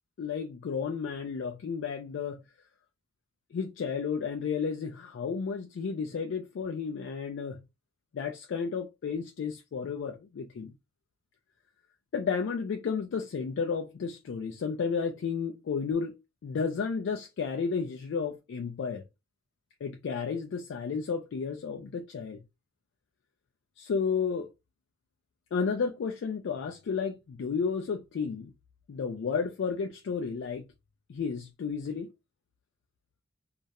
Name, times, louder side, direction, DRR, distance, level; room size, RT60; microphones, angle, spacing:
voice 1, 0.2-2.4 3.5-7.6 8.1-10.7 12.1-19.0 19.8-22.4 23.8-24.5 25.5-28.5 28.9-30.6 31.1-32.1, left 5 dB, 60° left, 0.3 m, -32 dB
2.3 x 2.0 x 2.7 m
head